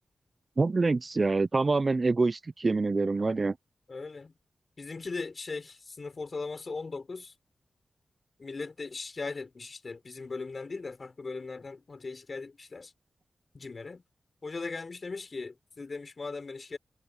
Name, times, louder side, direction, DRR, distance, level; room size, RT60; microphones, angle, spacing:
voice 1, 0.6-3.6, right 3 dB, 40° right, 0.3 m, -26 dB
voice 2, 3.9-4.3 4.8-7.3 8.4-12.9 13.5-14.0 14.4-16.8, left 4 dB, 45° left, 4.7 m, -38 dB
wide cardioid pair, 120°, 0 cm